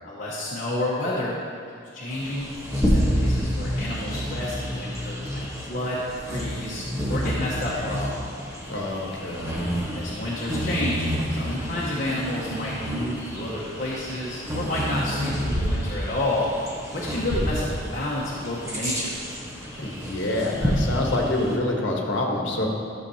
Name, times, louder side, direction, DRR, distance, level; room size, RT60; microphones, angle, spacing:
voice 1, 0.0-1.4 1.9-6.0 6.3-8.1 9.9-16.5 16.9-19.2, left 1 dB, 45° left, -7 dB, 1.1 m, -30 dB
Bird vocalization bird call bird song, 2.1-21.6, equal, 15° right, 1.1 m, -29 dB
voice 2, 8.7-9.7 19.8-22.7, left 2 dB, 65° left, -1 dB, 1.2 m, -27 dB
12.0 x 6.6 x 2.8 m, 2.3 s
head